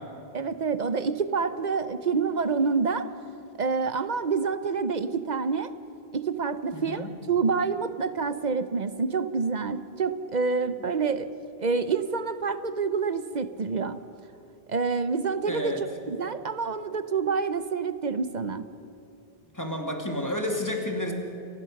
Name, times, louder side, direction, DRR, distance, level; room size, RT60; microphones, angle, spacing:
voice 1, 0.3-3.1 3.6-5.7 6.1-11.3 11.6-14.0 14.7-18.7, right 5 dB, 50° right, 12 dB, 0.8 m, -27 dB
voice 2, 6.7-7.1 15.5-15.8 19.5-21.1, left 1 dB, 15° left, 3 dB, 2.3 m, -30 dB
28.5 x 15.0 x 6.6 m, 2.7 s
omnidirectional pair, 1.1 m